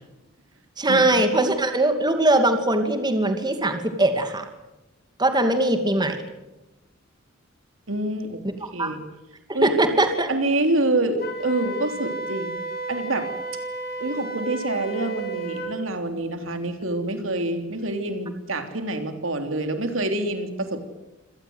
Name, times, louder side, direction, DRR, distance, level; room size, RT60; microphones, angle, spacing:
voice 1, 0.8-4.5 5.2-6.2 8.8-8.9 9.5-10.3, right 1 dB, 20° right, 7 dB, 2.4 m, -21 dB
voice 2, 7.9-8.4 8.7-9.0 9.5-9.7 10.3-12.5 12.9-13.3 14.0-20.9, right 2 dB, 85° right, 7 dB, 3.3 m, -26 dB
Wind instrument woodwind instrument, 11.2-15.7, right 3 dB, 50° left, 3.8 m, -32 dB
26.0 x 18.5 x 8.0 m, 0.99 s
head